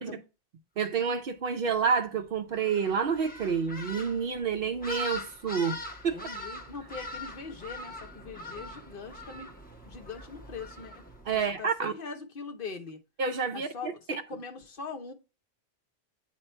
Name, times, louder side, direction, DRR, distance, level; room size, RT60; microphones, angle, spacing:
voice 1, 0.8-5.8 6.0-6.2 11.3-11.9 13.2-13.9, right 6 dB, 60° right, 0.8 m, -29 dB
sound 1, 2.5-11.6, left 1 dB, 10° left, 1.2 m, -42 dB
voice 2, 6.1-9.5 9.9-11.0 11.3-13.0 13.5-15.1, left 5 dB, 55° left, 1.0 m, -42 dB
8.9 x 3.0 x 4.4 m
omnidirectional pair, 1.1 m